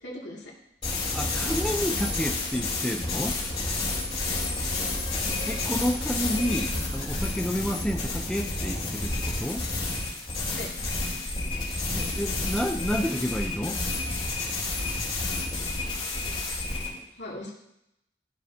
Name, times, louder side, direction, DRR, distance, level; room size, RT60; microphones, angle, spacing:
voice 1, 0.0-0.5 4.3-4.4 10.5-10.7 16.3-16.4 16.8-17.5, left 1 dB, 85° left, -4 dB, 2.4 m, -40 dB
sound 1, 0.8-16.9, left 2 dB, 30° left, 3.5 m, -30 dB
voice 2, 1.1-3.4 5.5-9.7 11.9-13.8, equal, 5° left, 3 dB, 0.4 m, -30 dB
14.5 x 5.1 x 2.8 m, 0.81 s
head